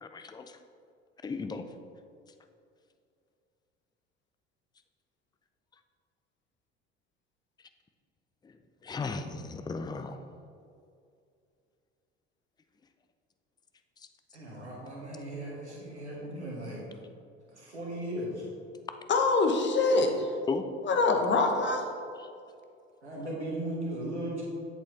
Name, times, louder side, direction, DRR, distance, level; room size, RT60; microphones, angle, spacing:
voice 1, 0.0-0.6 1.2-1.7 8.4-8.5 8.8-10.2 20.5-20.7 22.2-22.3, left 4 dB, 10° left, 8 dB, 0.5 m, -35 dB
voice 2, 14.3-16.9 17.5-18.5 23.0-24.4, right 1 dB, 90° right, -4 dB, 1.6 m, -37 dB
voice 3, 19.1-20.3 20.9-21.8, left 3 dB, 35° left, 3 dB, 1.1 m, -24 dB
8.0 x 7.1 x 3.3 m, 2.4 s
figure-of-eight pair, 60°, 33 cm